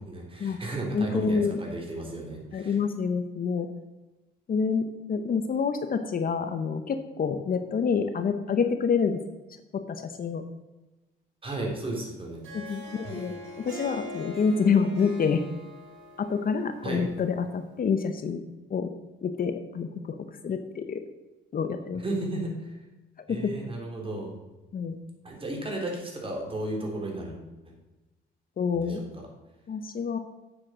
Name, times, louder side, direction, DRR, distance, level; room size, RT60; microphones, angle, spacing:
voice 1, 0.0-2.8 11.4-12.4 13.0-13.2 16.8-17.1 22.0-22.8 23.3-24.3 25.2-27.4 28.7-29.2, right 2 dB, 25° right, 0 dB, 3.6 m, -34 dB
voice 2, 0.9-1.6 2.5-3.7 4.5-9.2 9.7-10.4 12.5-15.4 16.2-18.4 18.7-18.9 19.2-20.2 20.4-21.0 21.5-22.0 23.2-23.5 24.7-25.0 28.6-29.0 29.7-30.2, left 5 dB, 45° left, 8 dB, 0.9 m, -27 dB
Harp, 12.3-17.7, left 1 dB, 80° right, 3.7 m, -43 dB
8.7 x 7.5 x 6.3 m, 1.1 s
cardioid pair, 90°, 20 cm